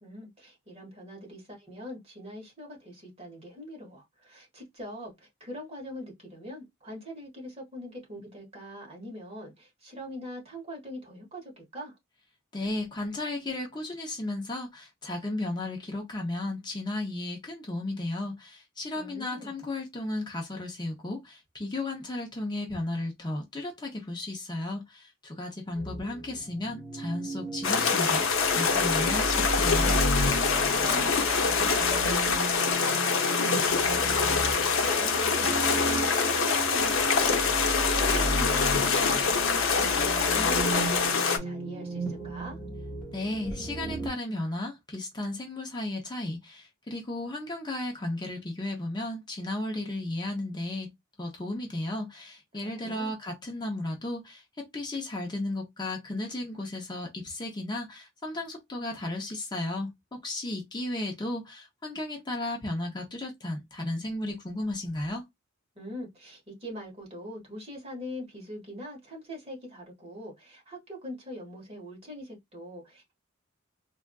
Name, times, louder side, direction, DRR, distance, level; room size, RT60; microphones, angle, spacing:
voice 1, 0.0-12.0 18.9-19.6 30.8-37.7 38.0-40.0 40.2-42.6 52.5-53.2 65.7-73.1, equal, 30° right, 1.4 m, -42 dB
voice 2, 12.5-30.0 43.1-50.9 51.2-54.4 54.7-65.3, left 2 dB, 20° left, 0.6 m, -34 dB
sound 1, 25.7-44.1, right 1 dB, 5° right, 1.3 m, -34 dB
sound 2, 27.6-41.4, left 5 dB, 80° left, 0.6 m, -25 dB
3.4 x 2.4 x 2.3 m
head